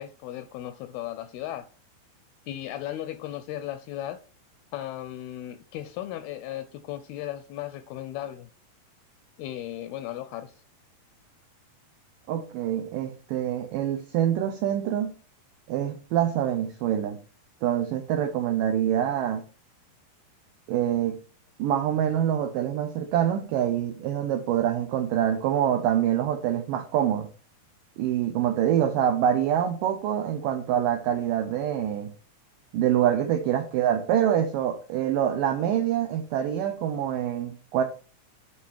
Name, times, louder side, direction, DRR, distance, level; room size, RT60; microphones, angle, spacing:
voice 1, 0.0-1.7 2.5-4.2 4.7-8.5 9.4-10.5, left 13 dB, 85° left, 2.2 m, -36 dB
voice 2, 12.3-15.1 15.7-17.2 17.6-19.4 20.7-21.2 21.6-27.3 28.0-32.1 32.7-37.8, right 10 dB, 90° right, 1.9 m, -25 dB
9.5 x 4.2 x 4.5 m
omnidirectional pair, 4.8 m